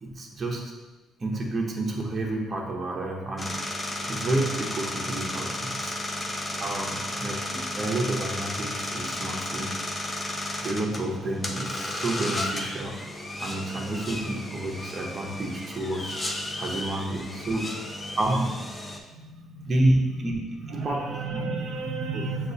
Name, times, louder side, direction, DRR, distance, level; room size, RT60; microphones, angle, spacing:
voice 1, 0.0-0.7 1.2-3.6 4.1-6.0 6.6-9.8 10.6-13.0 13.4-16.1 16.6-17.8 18.2-18.6 19.7-21.4 22.1-22.2, right 1 dB, 35° right, -1 dB, 0.7 m, -29 dB
sound 1, 3.4-19.0, left 1 dB, 20° left, 0.6 m, -33 dB
voice 2, 19.2-19.7 20.1-20.2 20.6-22.5, right 3 dB, 75° right, -1 dB, 0.7 m, -33 dB
6.6 x 2.4 x 2.6 m, 1.2 s
cardioid pair, 85°, 0 cm